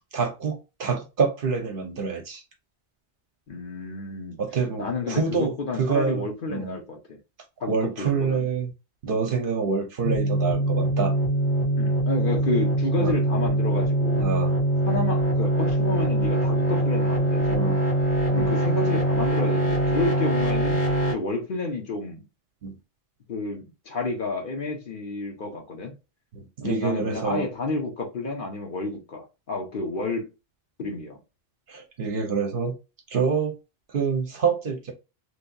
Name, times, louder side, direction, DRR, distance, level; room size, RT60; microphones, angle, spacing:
voice 1, 0.1-2.4 4.4-6.8 7.7-8.7 9.0-11.1 13.0-13.2 14.2-14.6 17.5-17.8 18.3-18.5 22.6-22.8 26.3-27.5 31.7-32.7 33.1-33.5 33.9-34.9, right 5 dB, 55° right, 0.8 m, -27 dB
voice 2, 3.5-4.4 4.8-7.2 7.6-8.5 11.8-14.3 14.9-17.8 18.3-20.8 21.1-22.2 23.3-25.9 26.6-30.3 30.8-31.2, left 3 dB, 55° left, 1.0 m, -30 dB
sound 1, 10.0-21.1, right 1 dB, 85° left, 1.7 m, -23 dB
3.2 x 2.7 x 2.6 m
omnidirectional pair, 1.1 m